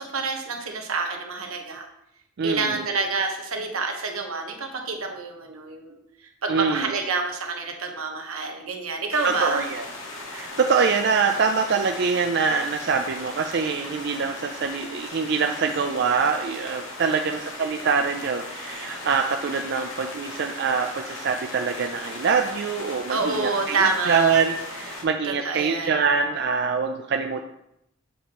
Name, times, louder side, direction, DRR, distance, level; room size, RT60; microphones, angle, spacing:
voice 1, 0.0-1.9 2.4-9.7 23.1-24.4 25.2-26.0, right 4 dB, 85° right, 3 dB, 1.2 m, -28 dB
voice 2, 2.4-2.8 6.5-6.9 9.2-9.8 10.3-27.4, right 5 dB, 50° right, 4 dB, 0.4 m, -24 dB
sound 1, 9.1-25.0, left 2 dB, 70° left, 1.4 m, -38 dB
8.1 x 3.0 x 6.3 m, 0.81 s
head